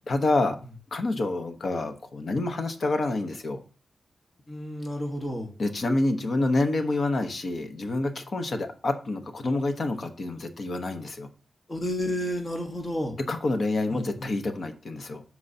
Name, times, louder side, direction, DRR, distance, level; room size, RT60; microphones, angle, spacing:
voice 1, 0.1-0.6 0.9-3.6 5.6-11.3 13.3-15.2, left 2 dB, 50° left, 7 dB, 1.0 m, -27 dB
voice 2, 4.5-5.5 11.7-13.1 13.9-14.1, left 1 dB, 25° left, 1 dB, 1.4 m, -31 dB
13.0 x 4.7 x 2.8 m, 0.37 s
wide cardioid pair, 145°, 0 cm